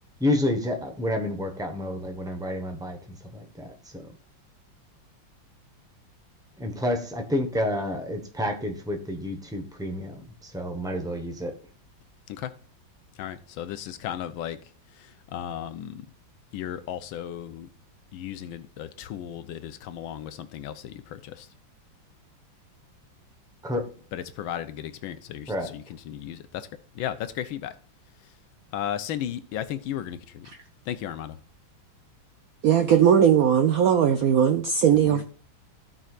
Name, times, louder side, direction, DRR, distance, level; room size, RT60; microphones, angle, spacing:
voice 1, 0.2-4.1 6.6-11.5 23.6-23.9 25.5-25.7, left 1 dB, 5° right, 4 dB, 0.7 m, -29 dB
voice 2, 13.2-14.6 15.0-16.1 16.5-17.7 18.1-21.5 24.1-26.7 26.9-27.8 28.7-30.5 30.9-31.4 34.9-35.2, left 10 dB, 80° left, 11 dB, 1.5 m, -35 dB
voice 3, 32.6-35.2, right 8 dB, 75° right, 7 dB, 0.8 m, -19 dB
16.0 x 5.6 x 2.4 m, 0.43 s
omnidirectional pair, 2.2 m